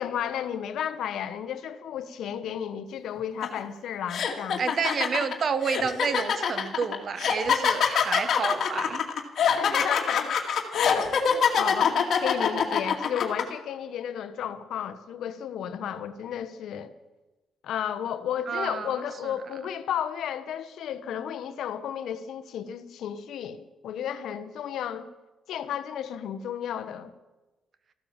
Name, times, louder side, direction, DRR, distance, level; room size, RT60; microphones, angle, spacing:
voice 1, 0.0-4.6 9.6-10.4 10.7-16.9 17.6-25.1 25.5-27.1, left 9 dB, 75° left, 11 dB, 1.2 m, -33 dB
sound 1, 3.4-3.6 4.1-13.4, left 7 dB, 60° left, 2.4 m, -24 dB
voice 2, 4.6-9.0 18.5-19.3, right 5 dB, 50° right, 12 dB, 1.4 m, -30 dB
14.5 x 12.5 x 7.3 m, 1.1 s
cardioid pair, 90°, 0 cm